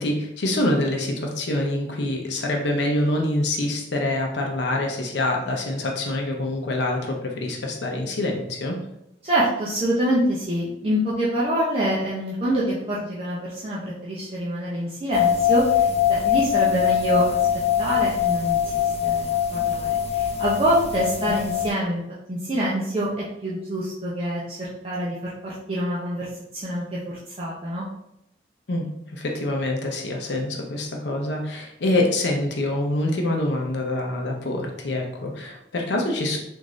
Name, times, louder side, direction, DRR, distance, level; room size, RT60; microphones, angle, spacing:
voice 1, 0.0-8.8 21.3-21.4 28.7-36.4, left 1 dB, 75° left, 1 dB, 0.6 m, -25 dB
voice 2, 9.2-17.4 17.8-22.0 22.3-26.3 26.6-27.9, right 1 dB, 35° right, -7 dB, 0.6 m, -26 dB
sound 1, 15.1-21.7, left 9 dB, 35° left, 0.4 m, -22 dB
3.7 x 2.6 x 3.1 m, 0.82 s
head